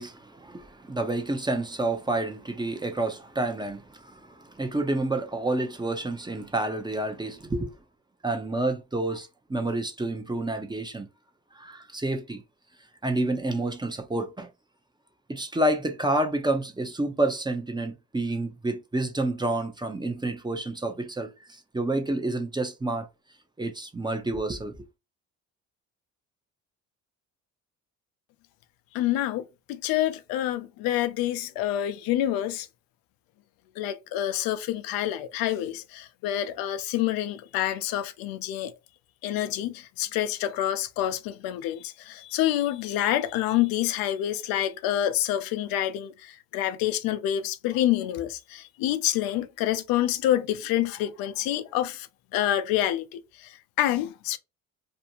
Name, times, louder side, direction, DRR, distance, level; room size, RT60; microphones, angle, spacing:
voice 1, 0.0-7.8 8.2-11.1 11.5-12.4 13.0-14.5 15.3-23.1 23.6-24.8, right 2 dB, 10° right, 0.6 m, -29 dB
voice 2, 28.9-32.7 33.8-38.7 39.2-52.1 52.3-54.4, left 12 dB, 75° left, 0.5 m, -27 dB
2.5 x 2.2 x 2.8 m
supercardioid pair, 70°, 35 cm